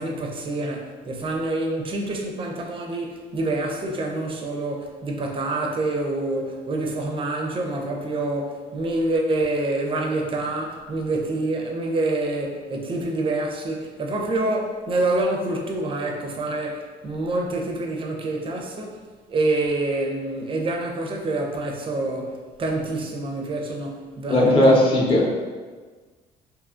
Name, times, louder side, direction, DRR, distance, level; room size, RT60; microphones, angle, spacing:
voice 1, 0.0-19.0 19.3-25.3, right 2 dB, 30° right, 1 dB, 0.4 m, -27 dB
voice 2, 24.3-25.5, left 1 dB, 35° left, -4 dB, 0.7 m, -17 dB
2.7 x 2.4 x 2.4 m, 1.4 s
cardioid pair, 110°, 17 cm